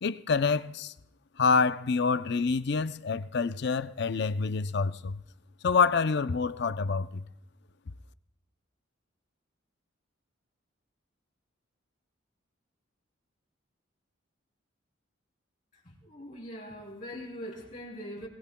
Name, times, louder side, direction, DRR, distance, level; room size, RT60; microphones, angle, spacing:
voice 1, 0.0-0.9 1.4-5.2 5.6-7.2, left 5 dB, 60° left, 0.5 m, -27 dB
voice 2, 15.7-18.3, equal, 45° left, 3.5 m, -42 dB
22.5 x 20.0 x 2.3 m
head